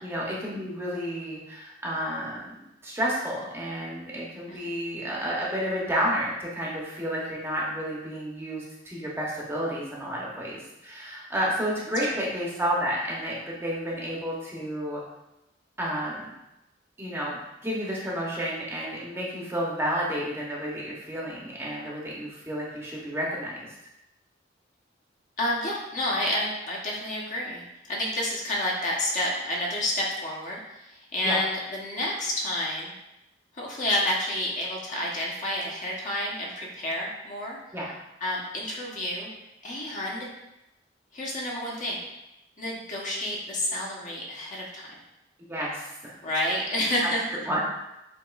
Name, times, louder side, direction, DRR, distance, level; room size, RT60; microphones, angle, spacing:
voice 1, 0.0-15.0 15.8-16.3 17.0-23.7 31.2-31.4 37.7-37.9 45.5-46.2 47.5-47.7, equal, 15° right, -5 dB, 0.8 m, -31 dB
voice 2, 25.4-32.9 33.5-37.6 38.2-39.3 39.6-40.3 41.1-42.0 42.6-44.9 46.2-47.4, left 1 dB, 40° left, -3 dB, 1.0 m, -29 dB
7.4 x 2.9 x 2.4 m, 0.91 s
head